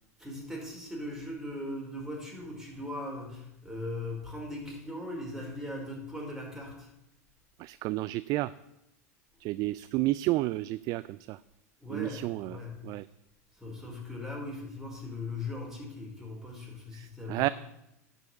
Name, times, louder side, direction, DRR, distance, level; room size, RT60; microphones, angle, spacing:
voice 1, 0.2-6.9 11.8-12.8 13.5-17.5, left 2 dB, 5° right, -2 dB, 4.4 m, -39 dB
voice 2, 7.6-8.5 9.4-11.4 11.9-13.1 16.9-17.5, right 18 dB, 45° right, 17 dB, 0.3 m, -31 dB
11.0 x 5.4 x 8.2 m, 0.85 s
hypercardioid pair, 90°, 9 cm